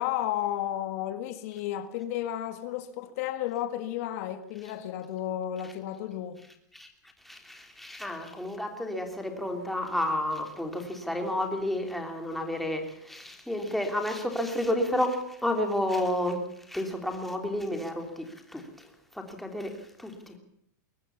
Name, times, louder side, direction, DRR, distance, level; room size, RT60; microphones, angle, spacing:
voice 1, 0.0-6.4, left 12 dB, 50° left, 1.7 m, -32 dB
voice 2, 7.2-20.4, left 1 dB, ahead, 3.2 m, -31 dB
22.5 x 18.5 x 7.1 m
supercardioid pair, 145°, 10 cm